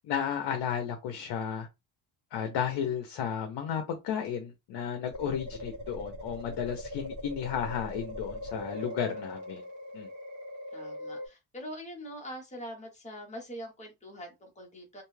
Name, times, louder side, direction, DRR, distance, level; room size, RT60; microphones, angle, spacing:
voice 1, 0.0-1.7 2.3-9.6 9.9-10.1, left 8 dB, 60° left, 0.7 m, -33 dB
sound 1, 5.1-11.3, left 1 dB, 45° right, 1.2 m, -40 dB
voice 2, 10.7-15.0, equal, 15° left, 0.8 m, -43 dB
2.5 x 2.3 x 3.1 m
cardioid pair, 180°, 47 cm